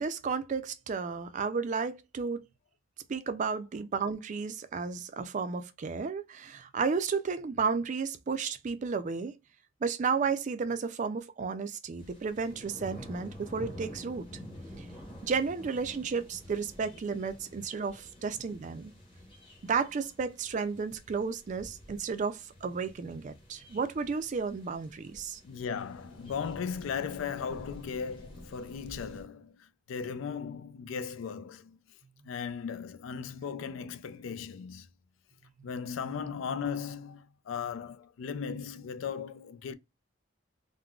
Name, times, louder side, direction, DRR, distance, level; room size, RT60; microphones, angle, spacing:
voice 1, 0.0-2.4 3.1-9.3 9.8-14.3 14.8-14.9 15.2-18.9 19.6-25.4, right 5 dB, 40° right, 0.3 m, -33 dB
sound 1, 12.0-29.2, equal, 25° left, 0.9 m, -49 dB
voice 2, 25.4-31.8 32.2-34.9 35.6-39.7, left 6 dB, 80° left, 0.4 m, -37 dB
3.7 x 2.1 x 2.3 m
head